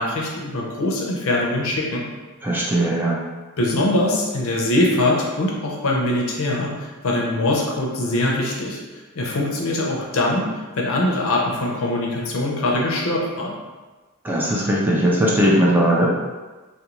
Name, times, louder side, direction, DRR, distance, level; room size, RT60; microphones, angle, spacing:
voice 1, 0.0-2.0 3.6-8.8 9.2-10.5 10.8-13.5, left 1 dB, 65° left, -2 dB, 0.6 m, -22 dB
voice 2, 2.4-3.2 14.2-16.1, right 1 dB, 10° right, -4 dB, 0.3 m, -19 dB
2.4 x 2.2 x 2.9 m, 1.3 s
head